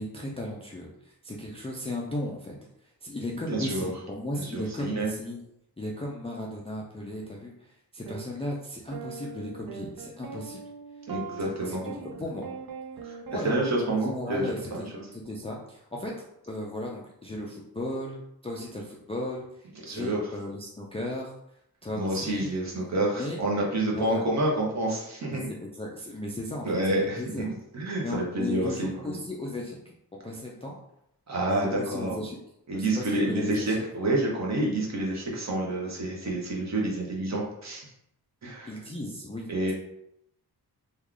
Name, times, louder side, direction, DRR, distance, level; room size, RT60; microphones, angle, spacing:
voice 1, 0.0-2.6 2.8-5.4 5.8-10.6 11.4-12.5 13.3-13.6 13.9-16.1 16.5-21.3 21.8-22.5 23.2-23.4 23.9-24.3 25.3-27.6 28.0-29.9 30.2-30.8 31.5-32.4 32.7-33.8 38.6-39.7, left 1 dB, 15° left, -2 dB, 0.3 m, -36 dB
voice 2, 3.5-3.9 4.5-5.1 11.1-11.8 13.1-13.2 13.4-14.4 14.7-14.8 19.8-20.2 22.0-25.4 26.6-27.5 27.7-29.2 31.3-32.2 32.7-37.8 38.4-38.7 39.5-39.7, right 1 dB, 45° right, -3 dB, 0.9 m, -28 dB
sound 1, 8.1-8.2 8.9-15.2, right 6 dB, 65° right, 0.6 m, -41 dB
3.1 x 2.3 x 3.6 m, 0.77 s
wide cardioid pair, 165°, 38 cm